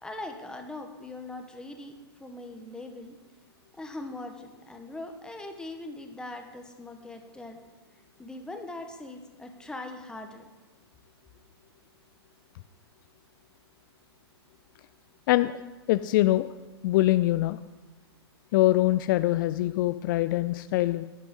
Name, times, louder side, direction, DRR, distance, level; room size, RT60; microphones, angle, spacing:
voice 1, 0.0-1.9 2.2-3.2 3.8-7.6 8.2-10.5, left 2 dB, 5° left, 4 dB, 1.2 m, -41 dB
voice 2, 15.9-16.5 16.8-17.6 18.5-21.0, left 16 dB, 50° left, 12 dB, 0.4 m, -23 dB
10.5 x 10.0 x 3.7 m, 1.2 s
hypercardioid pair, 120°, 14 cm